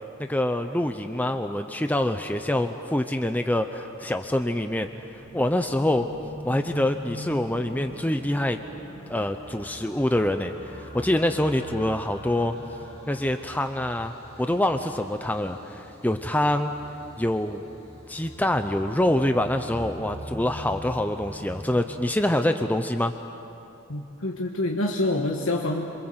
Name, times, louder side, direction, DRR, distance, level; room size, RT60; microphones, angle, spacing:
voice 1, 0.2-4.9 5.3-6.1 6.4-8.6 9.1-12.5 13.1-14.1 14.4-16.7 17.2-17.6 18.1-23.1, left 1 dB, 10° left, 7 dB, 0.7 m, -25 dB
sound 1, 4.8-21.7, equal, 30° left, 7.0 m, -43 dB
voice 2, 23.9-25.9, left 2 dB, 70° left, 0 dB, 1.6 m, -26 dB
28.0 x 26.0 x 8.0 m, 2.9 s
head